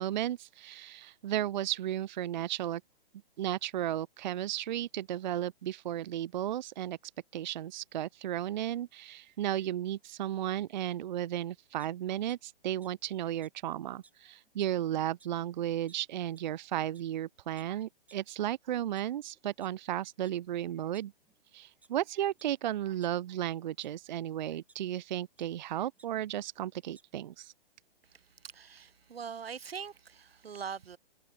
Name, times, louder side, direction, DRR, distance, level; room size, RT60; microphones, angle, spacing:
voice 1, 0.0-2.8 3.4-7.0 7.3-21.1 21.5-27.5, right 12 dB, 50° right, 0.4 m, -34 dB
sound 1, 11.8-12.4 12.8-12.9 13.4-13.5 14.0-14.1 14.4-14.8 15.2-15.3 15.9-16.0 16.4-16.5 16.9-17.0 17.6-17.7 18.1-18.2 18.7-19.7 20.2-20.3 20.7-21.4 21.8-21.9 22.3-22.5 23.0-23.9 24.7-24.8 25.4-25.5 25.7-26.1 26.4-26.5 26.8-27.0, right 4 dB, 5° right, 0.9 m, -61 dB
voice 2, 28.5-31.0, right 7 dB, 85° right, 0.8 m, -42 dB
figure-of-eight pair, 130°, 30 cm